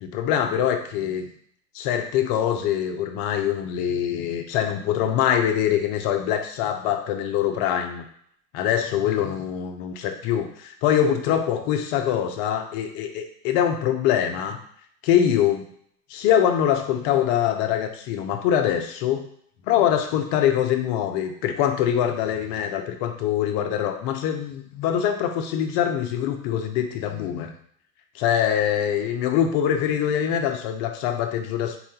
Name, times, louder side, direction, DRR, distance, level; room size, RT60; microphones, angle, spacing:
voice 1, 0.0-1.3 1.7-8.0 8.5-14.6 15.0-15.7 16.1-19.3 19.7-27.5 28.1-31.8, left 9 dB, 50° left, 6 dB, 0.6 m, -24 dB
4.1 x 2.3 x 2.8 m, 0.66 s
hypercardioid pair, 100°, 47 cm